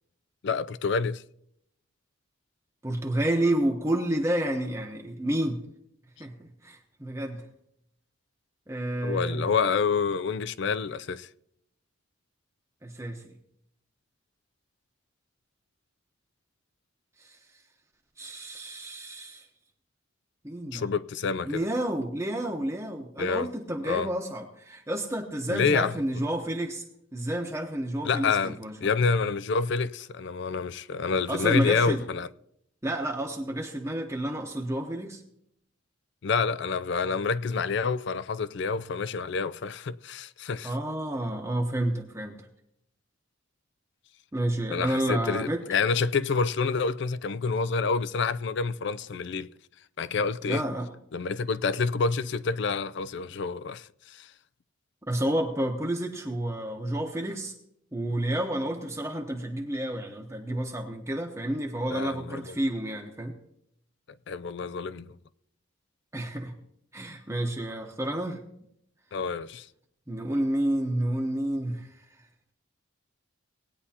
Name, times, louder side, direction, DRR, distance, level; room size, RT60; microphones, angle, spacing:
voice 1, 0.4-1.2 9.0-11.3 20.7-21.7 23.2-23.5 23.8-24.1 25.5-25.9 28.0-32.3 36.2-40.8 44.7-49.5 50.0-50.6 51.1-54.3 61.9-62.6 64.3-65.2 69.1-69.7, left 5 dB, 55° left, 0.4 m, -28 dB
voice 2, 2.8-5.6 6.2-7.4 8.7-9.5 12.8-13.2 17.2-17.4 18.2-19.5 20.4-20.9 21.4-26.8 27.1-28.9 31.3-32.0 32.8-35.2 40.6-42.5 44.3-45.6 50.5-50.9 55.1-57.5 57.9-63.3 66.1-66.5 66.9-68.4 70.1-71.9, right 1 dB, 15° right, 0.9 m, -30 dB
19.0 x 9.5 x 2.8 m
head